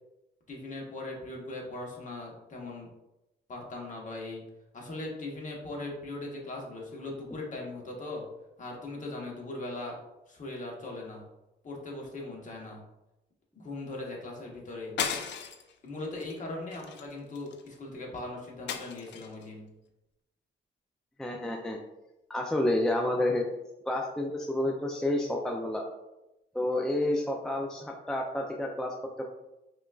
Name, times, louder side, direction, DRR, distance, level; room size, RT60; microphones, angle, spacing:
voice 1, 0.5-2.9 3.5-4.5 4.7-8.2 8.6-10.0 10.3-11.2 11.6-12.8 13.5-15.0 15.8-19.7, left 2 dB, 40° left, -1 dB, 1.1 m, -39 dB
sound 1, 15.0-15.7 16.2-16.4 16.7-17.7 18.7-19.4, left 7 dB, 65° left, 0.4 m, -35 dB
voice 2, 21.2-21.8 22.3-23.4 23.9-25.8 26.5-29.2, left 1 dB, 5° left, 0 dB, 0.4 m, -29 dB
5.0 x 2.4 x 2.3 m, 0.95 s
cardioid pair, 90°, 20 cm